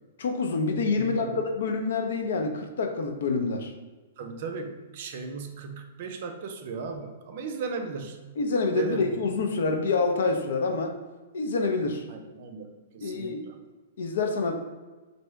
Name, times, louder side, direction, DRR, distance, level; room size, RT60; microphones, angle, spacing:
voice 1, 0.2-3.7 8.4-10.9 11.3-12.0 13.0-13.5 14.0-14.5, left 4 dB, 70° left, 4 dB, 0.6 m, -27 dB
voice 2, 1.0-1.4 4.2-8.2 8.7-9.2 12.1-13.6, right 5 dB, 45° right, 5 dB, 0.5 m, -36 dB
3.3 x 2.7 x 4.5 m, 1.3 s
hypercardioid pair, 170°, 0 cm